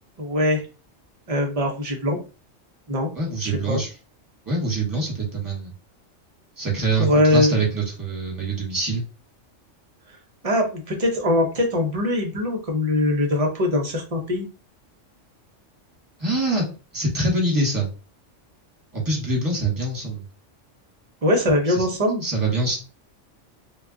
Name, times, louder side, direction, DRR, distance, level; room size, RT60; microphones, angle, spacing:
voice 1, 0.2-0.6 1.3-2.2 2.9-3.1 3.4-3.8 7.0-7.5 10.4-14.5 21.2-22.2, left 1 dB, 35° right, 2 dB, 0.6 m, -22 dB
voice 2, 3.1-3.9 4.5-5.7 6.6-9.0 16.2-16.6 16.9-17.9 18.9-20.2 21.7-21.9 22.2-22.8, right 2 dB, 15° right, -2 dB, 1.0 m, -24 dB
2.3 x 2.2 x 3.7 m, 0.34 s
omnidirectional pair, 1.3 m